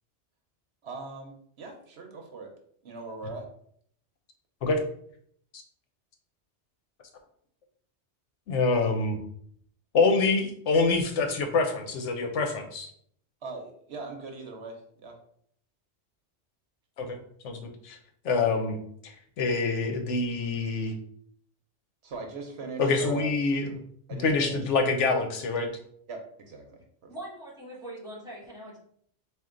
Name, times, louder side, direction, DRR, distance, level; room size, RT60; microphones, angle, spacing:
voice 1, 0.8-2.5 2.8-3.5 13.4-15.2 22.0-23.3 24.1-24.7 26.1-27.1, right 3 dB, 65° right, 2 dB, 1.0 m, -40 dB
voice 2, 8.5-9.2 9.9-12.9 17.0-17.2 17.4-18.0 18.2-18.8 19.0-20.9 22.8-23.8 24.2-25.7, left 3 dB, 80° left, 5 dB, 1.0 m, -26 dB
voice 3, 27.1-28.8, right 1 dB, 5° right, -5 dB, 1.5 m, -42 dB
4.4 x 2.4 x 3.7 m, 0.64 s
omnidirectional pair, 1.2 m